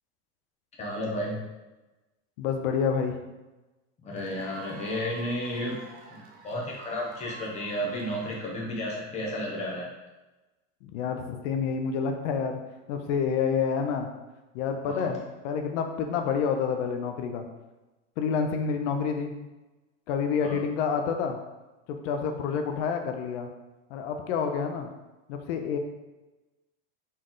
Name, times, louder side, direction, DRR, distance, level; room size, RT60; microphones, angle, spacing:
voice 1, 0.8-1.4 4.0-5.8 6.1-9.9 14.8-15.1 20.4-20.6, equal, 20° left, -3 dB, 0.9 m, -32 dB
voice 2, 2.4-3.2 10.8-12.6 12.9-14.1 14.5-17.5 18.2-19.3 20.1-21.4 21.9-23.5 23.9-24.9 25.3-25.8, left 6 dB, 85° left, 5 dB, 0.6 m, -28 dB
Cheering / Applause / Crowd, 4.2-8.9, right 3 dB, 25° right, 0.4 m, -49 dB
4.2 x 3.2 x 3.8 m, 1.1 s
cardioid pair, 165°, 35 cm